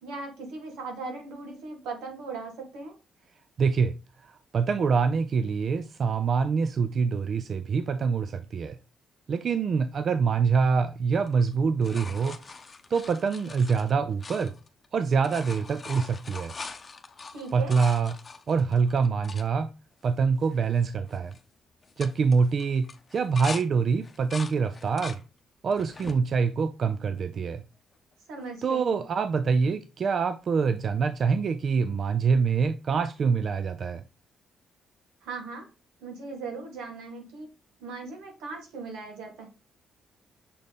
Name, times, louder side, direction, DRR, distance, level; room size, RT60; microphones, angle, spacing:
voice 1, 0.0-3.0 17.3-17.8 28.3-29.0 35.2-35.7 36.0-37.5 37.8-39.5, right 4 dB, 90° right, 2.1 m, -38 dB
voice 2, 3.6-3.9 4.2-8.8 9.3-12.4 12.9-14.5 14.9-16.5 17.5-18.2 18.5-19.7 20.0-21.4 22.0-25.2 25.6-27.6 28.6-34.0, right 5 dB, 50° right, 0.5 m, -25 dB
sound 1, 11.2-14.9 15.1-19.5 20.0-20.1 20.4-20.8 21.1-21.4 21.8-23.6 24.0-25.2 25.7-26.2 26.8-27.6 29.2-29.3, left 4 dB, 30° left, 0.8 m, -42 dB
6.8 x 4.0 x 3.5 m
cardioid pair, 90°, 0 cm